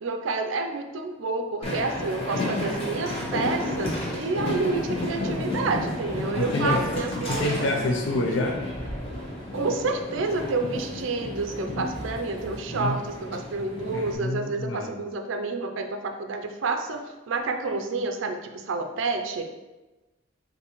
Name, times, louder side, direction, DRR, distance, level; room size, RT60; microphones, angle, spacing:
voice 1, 0.0-7.7 9.5-19.5, right 3 dB, 80° right, 5 dB, 0.5 m, -29 dB
Train, 1.6-14.2, left 1 dB, 30° left, 1.0 m, -32 dB
voice 2, 6.4-6.8 7.3-8.6 12.7-13.0 13.9-14.9, left 2 dB, 80° left, 1 dB, 0.5 m, -27 dB
5.6 x 2.7 x 3.0 m, 1.1 s
head